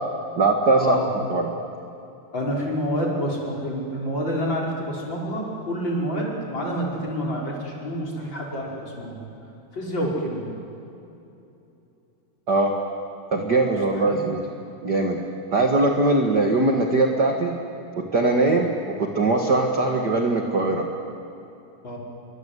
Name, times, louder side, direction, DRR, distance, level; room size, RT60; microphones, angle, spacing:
voice 1, 0.4-1.0 1.3-1.5 12.5-12.7 13.3-14.4 14.8-15.2 15.5-17.6 18.0-20.9, right 2 dB, 50° right, 2 dB, 1.2 m, -21 dB
voice 2, 2.3-9.2 9.7-10.5 13.9-14.2 18.4-18.6 21.8-22.0, equal, 25° left, -3 dB, 5.8 m, -28 dB
29.0 x 24.0 x 8.2 m, 2.9 s
omnidirectional pair, 4.7 m